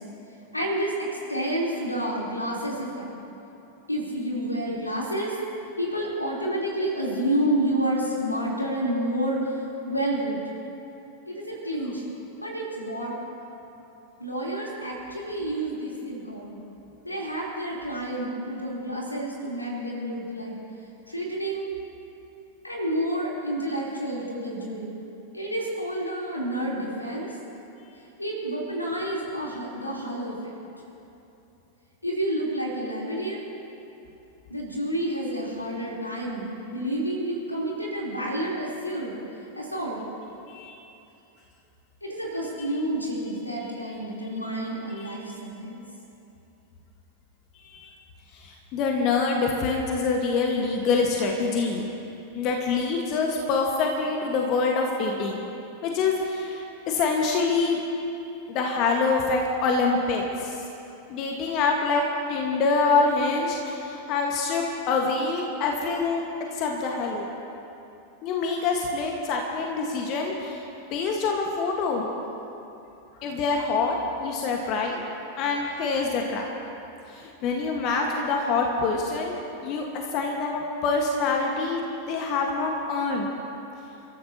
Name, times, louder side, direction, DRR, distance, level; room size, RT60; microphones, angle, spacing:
voice 1, 0.5-1.0 1.3-3.1 3.9-5.3 5.8-9.4 9.9-10.4 11.3-12.0 12.4-13.1 14.2-16.6 17.0-20.6 21.1-21.7 22.6-24.9 25.3-27.3 28.2-30.6 32.0-33.5 34.5-39.1 39.6-40.0 42.0-45.8, right 1 dB, 85° left, -4 dB, 3.6 m, -29 dB
voice 2, 48.3-51.9 52.3-55.4 55.8-57.8 58.5-60.6 61.1-62.0 62.3-66.2 66.5-67.2 68.2-70.6 70.9-72.1 73.2-75.0 75.4-76.4 77.1-83.3, left 4 dB, 40° left, 1 dB, 1.6 m, -25 dB
30.0 x 13.5 x 2.9 m, 2.9 s
figure-of-eight pair, 90°, 0 cm